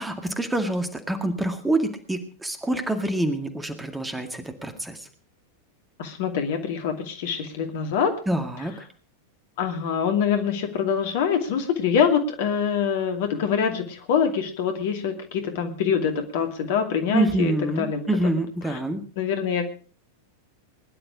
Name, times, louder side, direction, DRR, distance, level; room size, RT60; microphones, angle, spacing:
voice 1, 0.0-5.1 8.3-8.7 17.1-19.0, right 1 dB, 10° right, 7 dB, 2.1 m, -26 dB
voice 2, 6.0-8.1 9.6-18.0 18.7-18.8 19.2-19.6, left 7 dB, 50° left, 6 dB, 2.5 m, -25 dB
20.5 x 11.0 x 4.9 m, 0.39 s
figure-of-eight pair, 90°, 0 cm